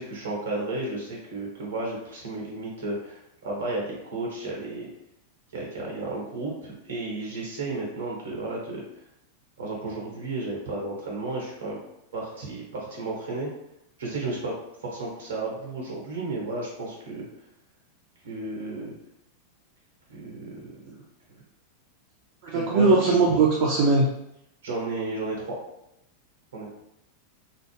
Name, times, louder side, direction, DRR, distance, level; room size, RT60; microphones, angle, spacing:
voice 1, 0.0-4.9 5.5-8.8 9.6-11.8 12.1-13.5 14.0-14.5 14.8-17.3 18.2-18.9 20.1-20.7 22.5-23.2 24.6-25.6 26.5-26.7, right 2 dB, 65° right, -2 dB, 1.0 m, -33 dB
voice 2, 22.4-24.1, right 3 dB, 50° right, -2 dB, 0.4 m, -20 dB
2.3 x 2.0 x 3.2 m, 0.82 s
figure-of-eight pair, 90°, 0 cm